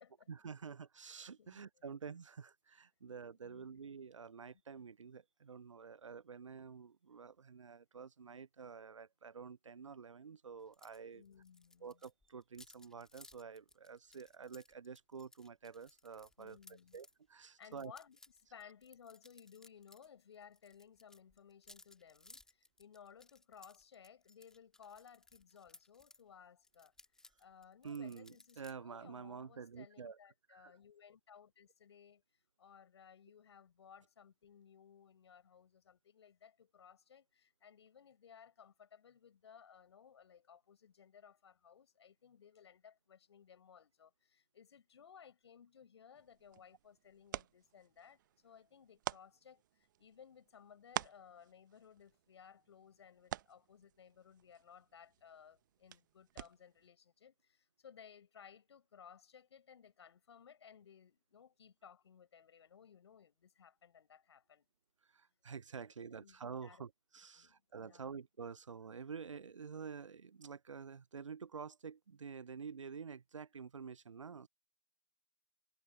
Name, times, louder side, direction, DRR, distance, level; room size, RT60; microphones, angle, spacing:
voice 1, 0.3-11.2 11.8-16.6 16.9-17.9 27.8-30.2 30.5-30.7 65.1-74.5, right 6 dB, 65° right, 0.8 m, -49 dB
voice 2, 3.4-3.8 11.1-12.0 16.4-17.0 17.6-18.2 18.5-26.9 27.4-32.2 32.6-64.7 66.0-66.9 67.4-68.1, left 7 dB, 55° left, 5.4 m, -60 dB
sound 1, 10.7-11.0 11.2-17.1 17.6-20.1 20.3-26.2 26.6-28.7, left 2 dB, 5° left, 2.1 m, -62 dB
sound 2, 46.1-56.9, right 13 dB, 35° right, 0.8 m, -49 dB
figure-of-eight pair, 125°, 17 cm